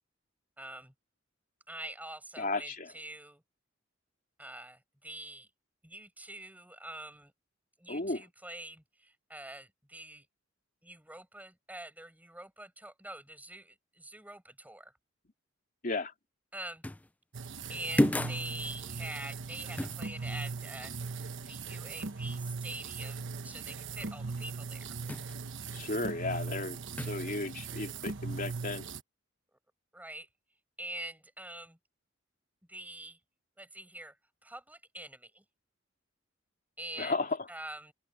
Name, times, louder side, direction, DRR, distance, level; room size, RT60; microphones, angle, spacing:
voice 1, 0.6-0.9 1.7-3.4 4.4-5.5 5.8-7.3 7.8-10.3 10.8-14.9 16.5-16.8 17.7-25.0 29.9-30.3 30.8-31.8 32.7-33.2 33.6-35.4 36.8-37.2 37.5-37.9, right 1 dB, 10° right, 7.1 m, -45 dB
voice 2, 2.4-2.9 7.9-8.2 15.8-16.1 25.7-28.9 37.0-37.4, left 2 dB, 45° left, 3.0 m, -34 dB
sound 1, 16.8-17.1 18.0-18.5 19.8-20.0 25.1-25.4 27.0-27.3, left 1 dB, 10° left, 0.4 m, -30 dB
sound 2, 17.3-29.0, right 4 dB, 65° right, 1.2 m, -39 dB
open air
head